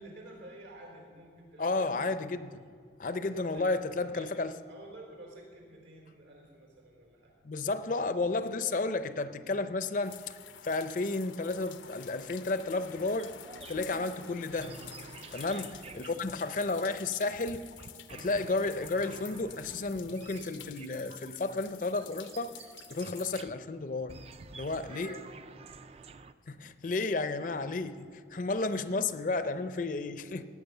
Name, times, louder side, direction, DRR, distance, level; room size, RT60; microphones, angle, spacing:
voice 1, 0.0-2.2 3.3-3.7 4.1-7.3 15.8-16.0 24.8-25.3 25.9-26.1, right 1 dB, 80° right, 0 dB, 3.8 m, -51 dB
voice 2, 1.6-2.7 3.0-4.5 7.4-10.4 10.6-13.3 13.7-14.7 15.3-17.7 18.1-22.5 22.9-24.2 24.5-25.1 26.5-30.5, left 3 dB, 45° left, 12 dB, 0.5 m, -32 dB
sound 1, 10.0-23.4, left 10 dB, 85° left, 0.7 m, -50 dB
sound 2, 13.2-23.6 24.1-26.3, right 4 dB, 30° right, 0.4 m, -50 dB
16.0 x 9.6 x 6.7 m, 2.2 s
head